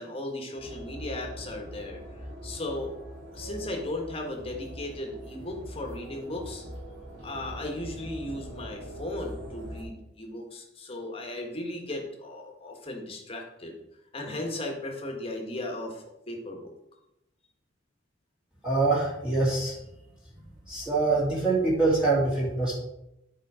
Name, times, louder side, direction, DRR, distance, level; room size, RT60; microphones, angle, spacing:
voice 1, 0.0-2.9 3.3-6.6 7.2-13.8 14.1-16.7, left 1 dB, 30° left, 1 dB, 1.7 m, -36 dB
sound 1, 0.6-9.8, equal, 55° right, 3.7 m, -42 dB
voice 2, 18.6-19.8 20.6-22.8, right 3 dB, 5° right, -8 dB, 2.5 m, -24 dB
11.0 x 5.0 x 5.0 m, 0.87 s
head